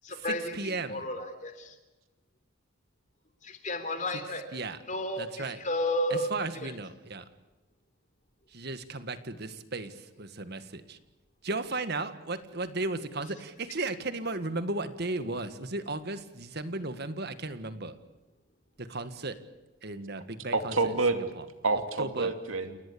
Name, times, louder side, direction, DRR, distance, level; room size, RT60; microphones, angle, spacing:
voice 1, 0.0-1.8 3.4-4.4 4.9-6.3 6.5-6.7, left 1 dB, 35° left, 8 dB, 3.6 m, -32 dB
voice 2, 0.5-1.0 4.5-4.8 5.2-5.6 6.1-7.3 8.5-11.0 11.4-17.9 18.8-19.4 19.8-20.7 22.0-22.3, right 2 dB, 50° right, 11 dB, 1.8 m, -35 dB
voice 3, 20.5-21.4 21.6-22.8, right 3 dB, 75° right, 7 dB, 2.7 m, -28 dB
29.5 x 18.5 x 8.6 m, 1.1 s
head